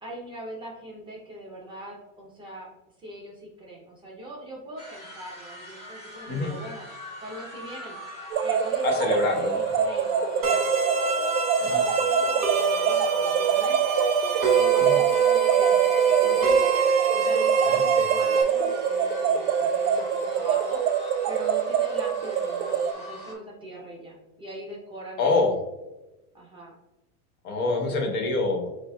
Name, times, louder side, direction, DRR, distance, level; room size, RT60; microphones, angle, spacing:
voice 1, 0.0-2.7 3.0-6.9 7.2-8.0 8.4-9.2 9.5-10.6 11.6-13.8 14.5-16.6 17.1-20.8 21.3-25.5 26.3-26.7, right 1 dB, 10° right, -4 dB, 0.5 m, -41 dB
sound 1, 4.8-23.3, left 1 dB, 15° left, 0.9 m, -40 dB
sound 2, 8.3-22.9, right 8 dB, 75° right, 0.5 m, -26 dB
voice 2, 8.8-9.6 11.6-11.8 14.8-15.0 17.6-18.0 25.2-25.6 27.4-28.7, left 3 dB, 70° left, 2 dB, 1.3 m, -26 dB
sound 3, 10.4-18.4, right 6 dB, 45° right, 1.1 m, -23 dB
7.2 x 2.4 x 2.3 m, 1.0 s
supercardioid pair, 150°, 45 cm